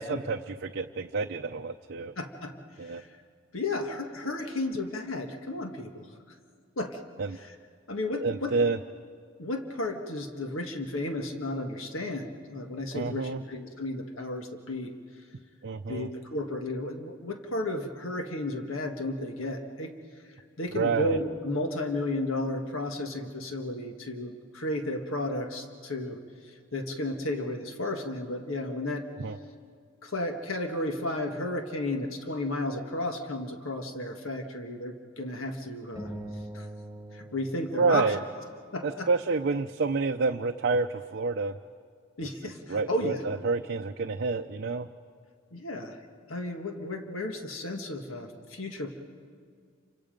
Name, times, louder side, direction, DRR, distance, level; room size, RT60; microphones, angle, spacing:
voice 1, 0.0-2.1 2.8-3.0 7.2-7.4 8.2-8.8 12.9-13.4 15.6-16.1 20.7-21.2 29.2-29.4 37.8-38.2 38.8-41.6 42.7-44.9, right 4 dB, 55° right, 5 dB, 0.6 m, -28 dB
voice 2, 2.2-2.5 2.8-3.1 3.5-6.1 6.8-7.0 7.3-7.5 7.9-8.5 9.4-14.9 15.9-19.9 20.6-26.2 26.4-29.0 30.0-36.1 36.5-36.7 37.1-38.1 38.7-39.1 42.2-43.2 45.5-46.0 46.3-48.9, left 1 dB, 80° left, 4 dB, 1.6 m, -33 dB
sound 1, 35.9-38.6, right 1 dB, 15° right, 7.2 m, -42 dB
29.0 x 25.5 x 5.2 m, 2.2 s
head